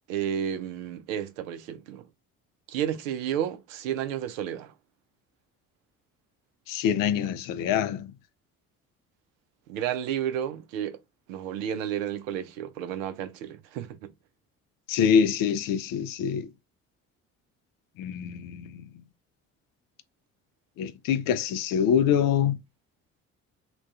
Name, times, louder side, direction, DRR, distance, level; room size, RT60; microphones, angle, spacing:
voice 1, 0.1-2.1 2.7-4.7 9.7-11.0 11.3-14.1, right 9 dB, 80° right, 0.5 m, -32 dB
voice 2, 6.7-8.1 14.9-16.5 18.0-18.9 20.8-22.6, left 8 dB, 60° left, 0.5 m, -25 dB
2.3 x 2.2 x 2.6 m
hypercardioid pair, 50°, 39 cm